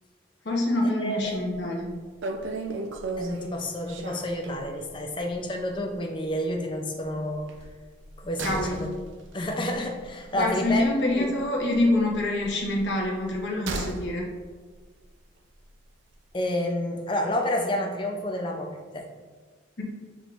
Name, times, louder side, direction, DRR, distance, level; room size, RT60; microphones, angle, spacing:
voice 1, 0.4-1.9 8.4-8.8 10.3-14.2 19.8-19.9, left 1 dB, 75° left, -2 dB, 0.9 m, -26 dB
voice 2, 1.0-1.4 3.2-7.5 8.2-8.9 9.3-10.9 11.2-11.3 16.3-19.1, left 1 dB, 25° left, 3 dB, 0.5 m, -29 dB
sound 1, 1.3-1.6 1.8-1.9 2.2-4.9 5.3-5.5 5.7-5.8 7.5-11.4 11.7-14.1 14.4-14.5, right 3 dB, 85° right, 0.4 m, -36 dB
5.9 x 3.5 x 2.5 m, 1.4 s
head